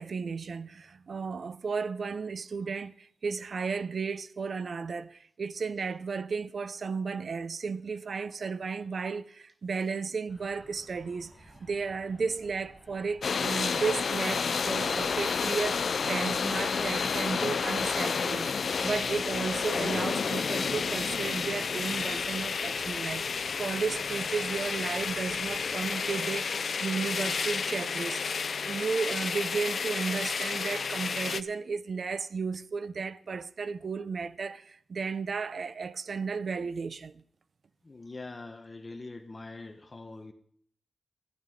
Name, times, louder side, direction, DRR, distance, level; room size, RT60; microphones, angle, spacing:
voice 1, 0.0-18.5 18.8-23.3 23.6-28.2 28.7-37.2, right 5 dB, 70° right, 0.5 m, -34 dB
sound 1, 10.3-25.9, equal, 5° left, 2.3 m, -54 dB
sound 2, 13.2-31.4, left 5 dB, 70° left, 0.4 m, -31 dB
voice 2, 37.8-40.3, left 3 dB, 35° left, 1.0 m, -43 dB
15.0 x 11.0 x 3.7 m
cardioid pair, 65°, 0 cm